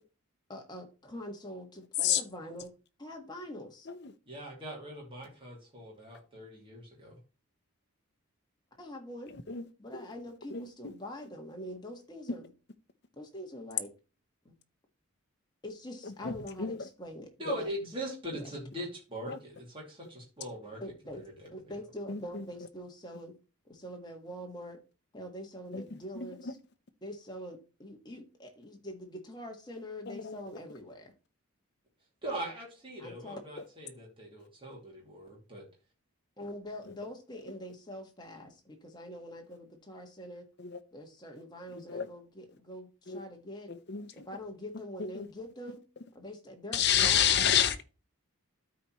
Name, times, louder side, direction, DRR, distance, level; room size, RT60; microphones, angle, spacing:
voice 1, 0.5-2.7 3.0-3.9 8.8-9.3 9.8-12.5 13.2-13.9 14.4-14.5 15.6-17.7 18.3-18.5 20.8-21.2 21.5-23.4 23.6-24.8 25.1-26.6 27.0-31.1 33.0-33.4 36.4-40.5 40.9-43.7 44.1-45.8 46.1-47.5, equal, 20° left, 1.4 m, -44 dB
voice 2, 4.3-7.2 17.4-20.8 21.1-21.5 32.2-35.6, right 1 dB, 25° right, 2.6 m, -41 dB
voice 3, 9.3-9.6 9.9-10.0 10.5-10.9 16.0-16.9 17.4-17.6 19.3-19.4 22.1-22.4 25.7-25.8 26.1-26.5 30.1-30.4 36.9-37.0 40.6-40.8 41.7-42.1 43.1-43.2 43.7-44.3 45.1-45.3 46.7-47.8, left 9 dB, 50° left, 0.7 m, -30 dB
13.0 x 4.4 x 3.0 m
head